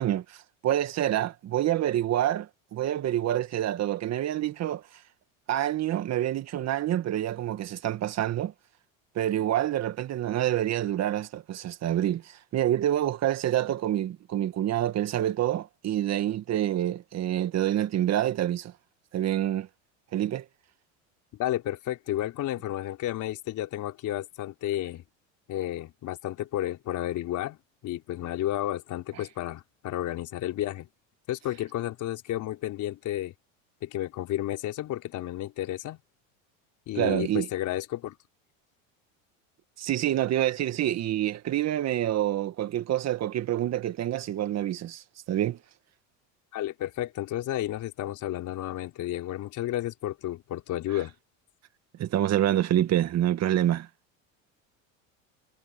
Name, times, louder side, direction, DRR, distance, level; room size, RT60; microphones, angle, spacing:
voice 1, 0.0-4.8 5.5-8.5 9.2-18.7 19.1-19.7 20.1-20.4 37.0-37.5 39.8-45.6 52.0-53.9, right 12 dB, 45° right, 2.0 m, -27 dB
voice 2, 21.4-25.0 25.5-27.6 27.8-30.9 31.3-33.3 33.8-36.0 36.9-38.2 46.5-51.1, left 13 dB, 50° left, 4.2 m, -32 dB
supercardioid pair, 105°, 38 cm